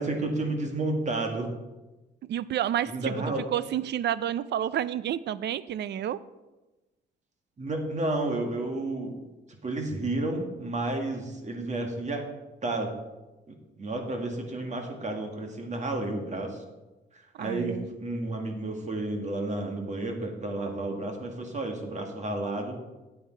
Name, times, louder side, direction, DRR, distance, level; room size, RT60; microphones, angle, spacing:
voice 1, 0.0-1.5 2.9-3.4 7.6-9.2 9.6-12.2 12.6-12.9 13.5-16.6 17.4-22.8, right 2 dB, 35° right, 3 dB, 1.9 m, -31 dB
voice 2, 2.3-3.2 3.5-6.2 17.3-17.9, right 11 dB, 60° right, 17 dB, 0.5 m, -30 dB
8.8 x 8.7 x 4.5 m, 1.1 s
cardioid pair, 90°, 20 cm